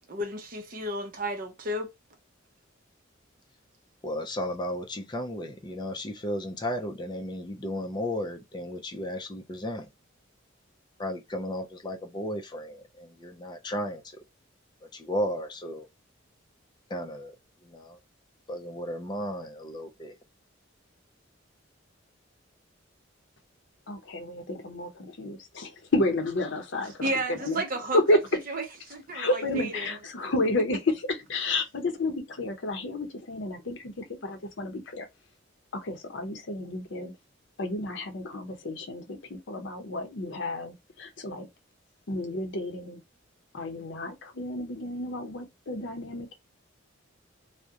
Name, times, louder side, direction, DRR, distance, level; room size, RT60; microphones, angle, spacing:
voice 1, 0.1-1.9 27.0-28.0 28.5-29.9, right 1 dB, 45° right, 0.6 m, -32 dB
voice 2, 4.0-9.9 11.0-14.2 14.8-15.9 16.9-17.4 17.6-18.0 18.5-20.1, equal, 20° left, 0.4 m, -34 dB
voice 3, 23.9-28.4 29.1-35.1 35.7-37.1 37.6-41.5 42.1-43.0 43.5-46.3, left 2 dB, 65° left, 0.6 m, -31 dB
2.4 x 2.0 x 2.7 m
head